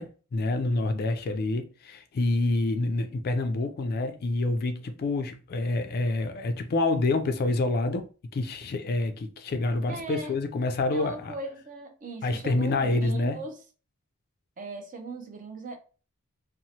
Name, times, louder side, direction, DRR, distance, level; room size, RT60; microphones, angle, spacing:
voice 1, 0.0-11.3 12.2-13.4, left 2 dB, 45° left, 0.3 m, -27 dB
voice 2, 9.9-10.4 10.9-13.6 14.6-15.8, right 3 dB, 35° right, 0.5 m, -39 dB
2.8 x 2.0 x 2.7 m
head